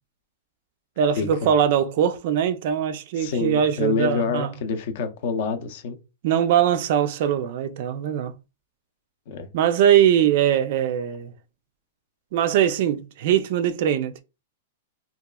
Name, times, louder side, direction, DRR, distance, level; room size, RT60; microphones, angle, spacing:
voice 1, 1.0-4.6 6.2-8.3 9.5-11.3 12.3-14.2, right 9 dB, 50° right, 0.3 m, -21 dB
voice 2, 3.2-6.0 9.3-9.5, left 5 dB, 50° left, 0.5 m, -27 dB
2.8 x 2.3 x 2.2 m
supercardioid pair, 165°, 0 cm